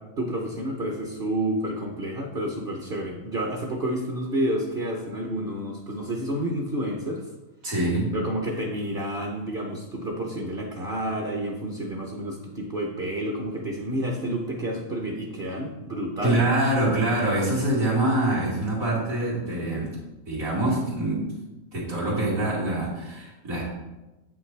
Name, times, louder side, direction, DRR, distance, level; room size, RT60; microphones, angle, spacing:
voice 1, 0.2-7.2 8.1-16.4, right 1 dB, 45° right, 0 dB, 0.9 m, -29 dB
voice 2, 7.6-8.1 16.2-19.9 20.3-21.3 21.7-23.6, right 1 dB, 80° right, -6 dB, 2.7 m, -25 dB
7.7 x 5.8 x 3.3 m, 1.1 s
omnidirectional pair, 1.4 m